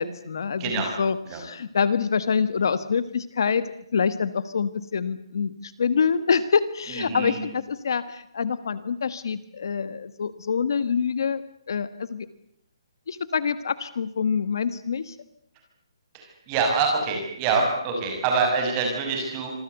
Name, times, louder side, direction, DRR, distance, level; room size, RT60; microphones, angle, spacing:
voice 1, 0.0-0.7 1.0-11.4 11.7-12.3 13.1-15.1, left 6 dB, 50° left, 14 dB, 1.4 m, -26 dB
voice 2, 0.6-0.9 1.3-1.4 6.9-7.4 16.1-19.5, right 4 dB, 15° right, 2 dB, 6.2 m, -25 dB
26.5 x 23.0 x 8.1 m, 0.71 s
hypercardioid pair, 180°, 3 cm